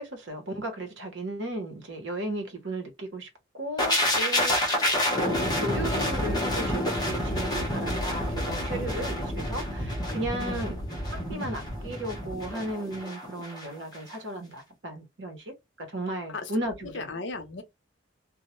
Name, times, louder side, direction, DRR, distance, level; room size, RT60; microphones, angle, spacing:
voice 1, 0.0-3.3 3.5-10.8 11.3-17.1, right 1 dB, 65° right, 0.9 m, -35 dB
sound 1, 3.8-13.7 13.9-14.1, left 1 dB, 20° left, 0.7 m, -28 dB
voice 2, 10.4-10.8 16.3-16.5 16.8-17.6, left 3 dB, 65° left, 0.6 m, -36 dB
2.2 x 2.0 x 2.9 m
head